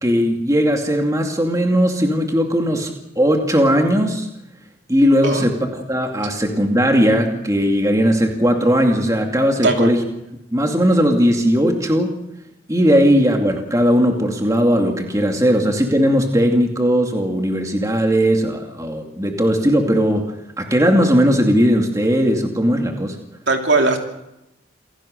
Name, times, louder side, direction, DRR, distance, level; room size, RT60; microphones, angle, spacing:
voice 1, 0.0-4.3 4.9-10.0 10.5-12.1 12.7-23.2, equal, 15° right, 3 dB, 2.4 m, -18 dB
voice 2, 23.5-24.0, right 3 dB, 60° right, 3 dB, 3.0 m, -18 dB
28.0 x 17.0 x 6.6 m, 0.88 s
head